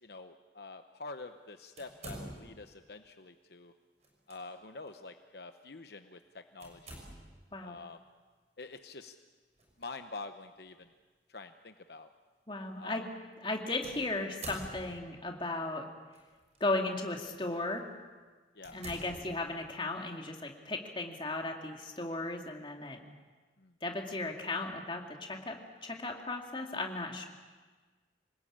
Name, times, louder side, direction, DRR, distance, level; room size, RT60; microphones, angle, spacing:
voice 1, 0.0-3.7 4.3-7.0 7.6-8.0 8.6-9.1 9.8-10.9 11.3-12.1 12.8-13.1 18.5-18.8 23.6-23.7, left 3 dB, 65° left, 8 dB, 0.9 m, -47 dB
sound 1, 1.8-2.8 4.0-4.4 4.9-5.0 6.6-7.5 9.6-9.9 10.7-10.8 13.8-15.2 16.1-16.6 17.2-17.4 17.9-18.0 18.6-19.8, right 1 dB, 35° right, 6.6 m, -47 dB
voice 2, 12.5-13.1 13.4-15.9 16.6-17.9 18.7-23.0 23.8-27.3, left 2 dB, 25° left, 2 dB, 2.4 m, -36 dB
27.0 x 20.0 x 8.7 m, 1.4 s
head